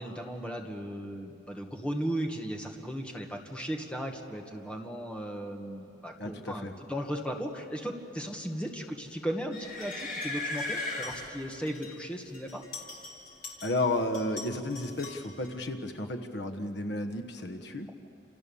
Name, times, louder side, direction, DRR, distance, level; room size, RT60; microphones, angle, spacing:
voice 1, 0.0-12.6, equal, 5° left, 2 dB, 1.8 m, -36 dB
voice 2, 6.2-6.7 13.6-17.9, left 2 dB, 60° left, 7 dB, 1.2 m, -32 dB
sound 1, 9.5-11.9 12.3-13.9 14.1-15.5, left 3 dB, 45° left, 4.3 m, -38 dB
30.0 x 28.0 x 7.1 m, 2.7 s
head